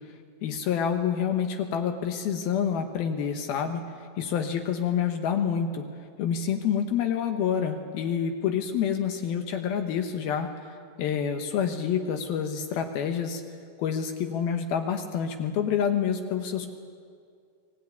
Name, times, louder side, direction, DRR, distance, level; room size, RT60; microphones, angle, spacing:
voice 1, 0.4-5.8 6.2-13.4 13.8-16.7, left 7 dB, 70° left, 6 dB, 2.7 m, -28 dB
24.0 x 17.5 x 9.4 m, 2.2 s
omnidirectional pair, 5.0 m